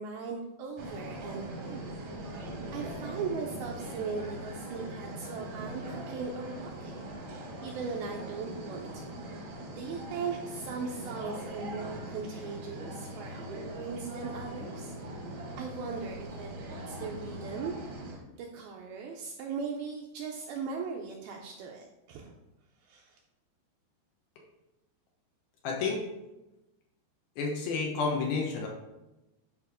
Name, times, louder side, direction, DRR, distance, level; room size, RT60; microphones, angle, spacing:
voice 1, 0.0-7.0 7.3-9.2 9.7-14.9 15.6-16.5 16.9-17.7 18.4-22.4 22.8-23.2, right 5 dB, 80° right, 0 dB, 2.2 m, -39 dB
sound 1, 0.8-18.2, right 1 dB, 60° right, 1.6 m, -41 dB
voice 2, 25.6-26.0 27.4-28.7, left 4 dB, 70° left, -1 dB, 2.7 m, -30 dB
10.5 x 5.1 x 3.6 m, 0.98 s
omnidirectional pair, 5.0 m